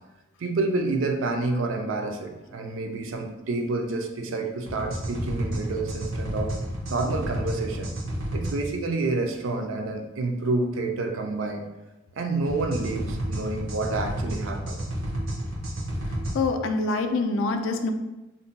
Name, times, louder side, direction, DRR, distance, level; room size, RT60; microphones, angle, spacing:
voice 1, 0.4-6.5 6.9-7.9 8.3-11.6 12.1-14.8, right 3 dB, 70° right, 0.4 m, -28 dB
sound 1, 4.7-8.6 12.5-16.4, right 1 dB, 90° right, 0.9 m, -31 dB
voice 2, 16.3-17.9, left 3 dB, 65° left, 0.3 m, -25 dB
2.6 x 2.1 x 3.9 m
head